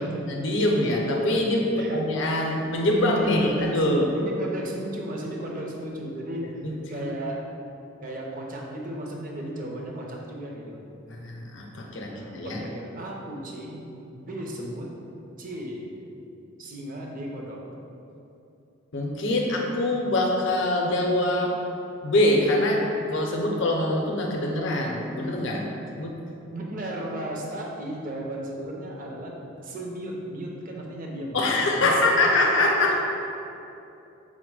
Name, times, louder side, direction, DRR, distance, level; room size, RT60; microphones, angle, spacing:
voice 1, 0.3-4.1 6.6-7.0 11.1-12.6 18.9-21.6 22.0-25.6 26.0-26.1 31.3-33.0, left 1 dB, 65° left, 0 dB, 0.5 m, -24 dB
voice 2, 2.8-3.8 4.1-6.6 6.9-7.5 8.0-10.8 12.1-13.8 14.1-14.9 15.4-15.9 16.6-17.6 26.5-29.3 29.6-32.0 32.9-33.0, right 1 dB, 40° right, -1 dB, 0.5 m, -35 dB
4.3 x 2.1 x 4.6 m, 2.8 s
head